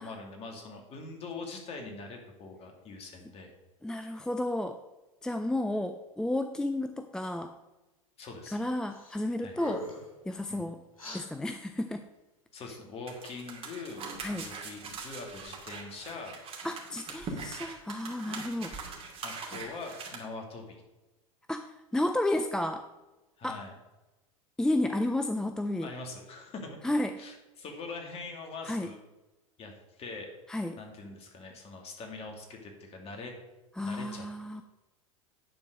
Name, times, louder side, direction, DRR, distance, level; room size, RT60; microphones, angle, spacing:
voice 1, 0.0-3.5 8.2-8.6 9.4-9.6 10.5-10.6 12.5-14.0 14.4-16.4 19.2-20.8 23.4-23.7 25.8-26.8 27.2-29.0 29.6-30.3 30.8-33.3 33.8-34.3, left 3 dB, 35° left, 3 dB, 2.4 m, -43 dB
voice 2, 3.8-4.8 5.2-7.5 8.5-9.9 10.3-10.8 11.1-12.0 14.2-14.5 16.6-18.8 21.5-22.9 23.4-23.6 24.6-25.9 26.8-27.1 28.6-28.9 30.5-30.8 33.8-34.6, left 1 dB, 5° left, 8 dB, 0.4 m, -32 dB
sound 1, 8.9-9.2 9.5-10.1 11.0-11.2, left 1 dB, 85° left, 3.5 m, -40 dB
sound 2, 13.1-20.1, right 4 dB, 35° right, 2.5 m, -42 dB
10.0 x 4.6 x 6.4 m, 1.1 s
hypercardioid pair, 95°, 17 cm